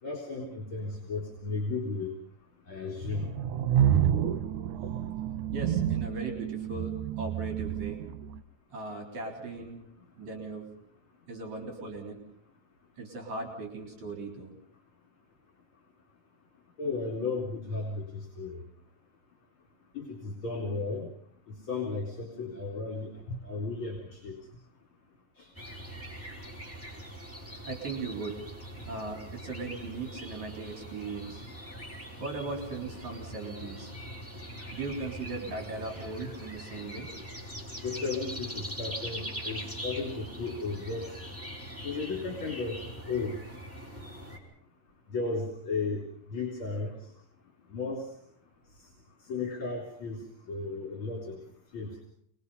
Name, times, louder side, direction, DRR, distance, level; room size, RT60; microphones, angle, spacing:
voice 1, 0.0-2.1 2.7-3.3 16.8-18.6 19.9-21.1 21.7-23.1 23.4-24.4 25.4-25.5 37.8-41.1 41.8-42.8 43.1-43.4 45.1-46.0 46.3-46.9 47.7-48.1 49.3-50.2 50.5-51.4 51.7-52.0, left 3 dB, 45° left, 0 dB, 4.4 m, -34 dB
sound 1, 3.1-8.4, right 10 dB, 90° right, 2.6 m, -29 dB
voice 2, 5.5-8.0 8.7-9.8 10.2-10.7 11.3-12.2 13.0-14.6 27.6-28.4 28.8-31.4 32.2-33.9 34.7-37.1, right 3 dB, 70° right, 2 dB, 5.0 m, -38 dB
sound 2, 25.5-44.4, equal, 5° right, 5.1 m, -42 dB
28.0 x 21.5 x 5.6 m, 0.68 s
omnidirectional pair, 3.4 m